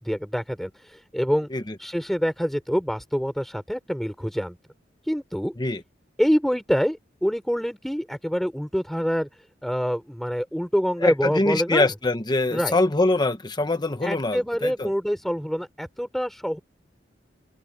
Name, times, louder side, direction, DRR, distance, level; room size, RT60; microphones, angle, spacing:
voice 1, 0.0-1.5 1.8-4.6 5.1-5.6 6.2-9.3 9.6-11.9 12.5-12.8 14.0-16.6, equal, ahead, 4.6 m, -26 dB
voice 2, 11.0-14.9, left 2 dB, 25° left, 1.1 m, -24 dB
open air
head